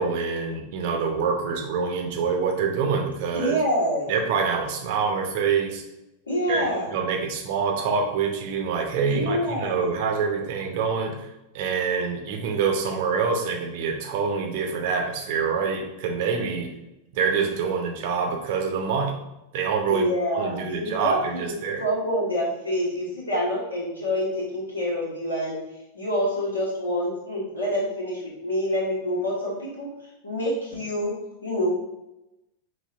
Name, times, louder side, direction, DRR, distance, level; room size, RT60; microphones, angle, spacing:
voice 1, 0.0-3.6 4.1-5.8 6.5-11.3 11.5-16.7 17.1-19.2 19.5-20.1 20.3-21.8, right 5 dB, 50° right, 3 dB, 0.7 m, -26 dB
voice 2, 3.3-4.1 6.3-6.9 9.1-9.9 19.9-21.5 21.8-25.6 25.9-29.9 30.2-31.1 31.4-31.7, equal, 75° left, -5 dB, 1.5 m, -26 dB
5.4 x 2.6 x 2.5 m, 0.93 s
figure-of-eight pair, 90°, 0 cm